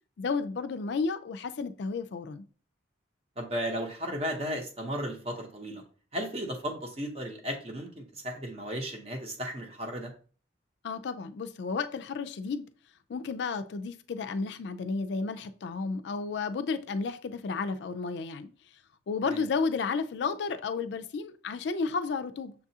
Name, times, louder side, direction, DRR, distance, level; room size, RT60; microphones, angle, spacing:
voice 1, 0.2-2.4 10.8-12.7 13.1-18.5 19.1-22.5, left 4 dB, 65° left, 0.3 m, -32 dB
voice 2, 3.4-5.8 6.1-10.1 19.3-19.4, equal, 30° right, 0.7 m, -35 dB
6.7 x 2.4 x 2.7 m
head